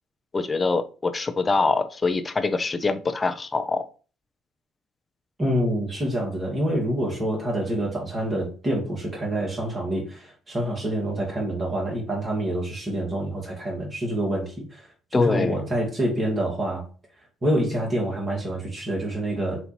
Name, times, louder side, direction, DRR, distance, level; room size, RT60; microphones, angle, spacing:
voice 1, 0.3-3.8 15.1-15.6, left 3 dB, 25° left, 0.8 m, -24 dB
voice 2, 5.4-14.9 15.1-16.8 17.4-19.7, right 1 dB, 30° right, 2.3 m, -27 dB
7.7 x 2.9 x 4.3 m
figure-of-eight pair, 50°, 0 cm